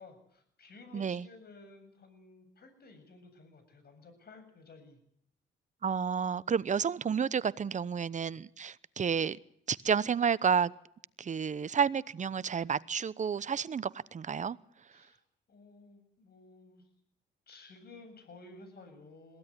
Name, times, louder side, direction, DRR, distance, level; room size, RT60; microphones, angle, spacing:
voice 1, 0.0-5.0 14.9-15.2 15.5-16.8 17.5-19.4, left 3 dB, 50° left, 7.8 m, -54 dB
voice 2, 0.9-1.3 5.8-9.4 9.7-10.7 11.2-14.6, right 7 dB, 40° right, 1.0 m, -30 dB
22.0 x 16.5 x 9.7 m
cardioid pair, 90°, 20 cm